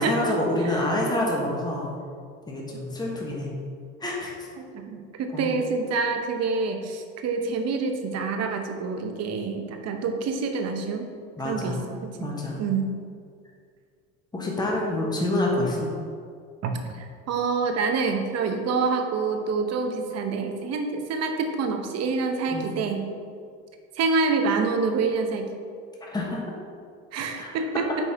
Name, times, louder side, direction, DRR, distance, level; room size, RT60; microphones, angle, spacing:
voice 1, 0.0-1.9 2.5-3.5 4.0-4.3 5.3-5.5 11.4-11.8 12.2-12.6 14.3-15.9 22.5-22.6 26.0-26.4 27.4-27.5, left 1 dB, 10° left, -3 dB, 1.3 m, -27 dB
voice 2, 4.6-11.1 11.4-11.8 12.0-12.3 12.6-12.9 16.6-23.0 24.0-25.5 27.1-27.8, right 4 dB, 50° right, 5 dB, 0.9 m, -27 dB
5.4 x 4.1 x 4.7 m, 2.2 s
supercardioid pair, 95°, 33 cm